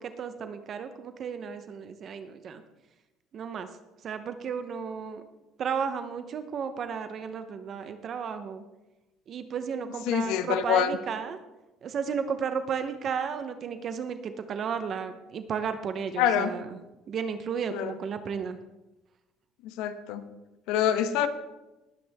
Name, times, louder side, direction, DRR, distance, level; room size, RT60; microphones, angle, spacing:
voice 1, 0.0-2.6 3.3-3.7 4.0-5.2 5.6-8.6 9.3-11.4 11.8-16.8 17.1-18.6, right 6 dB, 40° right, 9 dB, 0.9 m, -33 dB
voice 2, 10.1-10.9 16.2-16.5 17.7-17.9 19.8-20.2 20.7-21.3, left 9 dB, 85° left, 10 dB, 1.1 m, -25 dB
19.5 x 9.4 x 3.5 m, 1.0 s
cardioid pair, 145°, 0 cm